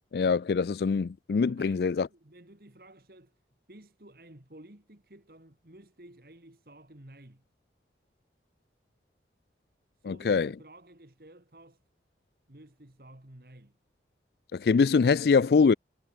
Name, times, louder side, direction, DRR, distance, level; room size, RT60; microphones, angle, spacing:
voice 1, 0.1-2.1 10.0-10.5 14.5-15.7, left 5 dB, 65° left, 0.4 m, -23 dB
voice 2, 1.5-3.3 3.7-7.4 10.0-11.8 12.5-13.8, right 1 dB, 55° right, 2.4 m, -53 dB
head